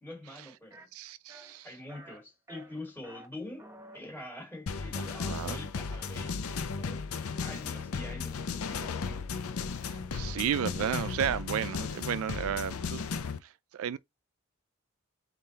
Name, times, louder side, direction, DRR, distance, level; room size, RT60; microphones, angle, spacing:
voice 1, 0.0-0.9 1.6-6.4 6.8-7.1 7.4-9.2, left 1 dB, 10° left, 1.8 m, -45 dB
sound 1, 0.7-0.9 1.3-1.6 1.9-2.2 2.5-3.3 3.6-4.0, right 2 dB, 15° right, 1.1 m, -50 dB
voice 2, 0.9-1.7 5.0-5.6 7.2-7.3 9.8-13.0 13.4-14.0, right 9 dB, 80° right, 0.3 m, -33 dB
sound 2, 4.7-13.4, left 5 dB, 85° left, 0.6 m, -35 dB
3.9 x 3.8 x 2.8 m
head